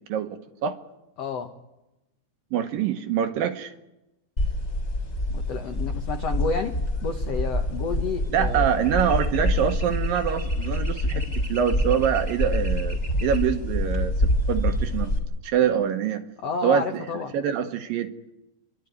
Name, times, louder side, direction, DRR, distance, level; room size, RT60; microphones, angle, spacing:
voice 1, 1.2-1.5 5.3-6.7 7.0-8.7 16.4-17.3, left 4 dB, 80° left, 5 dB, 1.4 m, -30 dB
voice 2, 2.5-3.7 8.3-15.1 15.4-16.2 16.6-17.1 17.3-18.1, right 8 dB, 70° right, 7 dB, 2.6 m, -25 dB
sound 1, 4.4-15.2, left 1 dB, 20° left, 3.2 m, -26 dB
28.5 x 12.0 x 9.4 m, 0.98 s
omnidirectional pair, 4.6 m